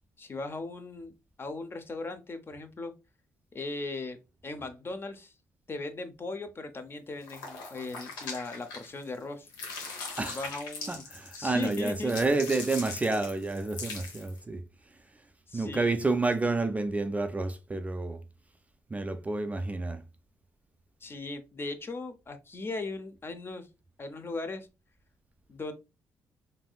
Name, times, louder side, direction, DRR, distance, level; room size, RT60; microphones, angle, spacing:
voice 1, 0.2-2.9 3.5-4.2 4.4-5.3 5.7-9.5 10.2-11.0 11.4-12.1 15.5-16.0 21.0-23.7 24.0-24.7 25.5-25.7, left 3 dB, 35° left, 0.6 m, -38 dB
sound 1, 7.2-9.2 9.5-14.4, left 4 dB, 85° left, 0.7 m, -41 dB
voice 2, 10.2-10.5 10.9-14.6 15.5-18.2 18.9-20.0, right 3 dB, 20° right, 0.3 m, -29 dB
3.3 x 2.5 x 2.3 m
supercardioid pair, 60°, 7 cm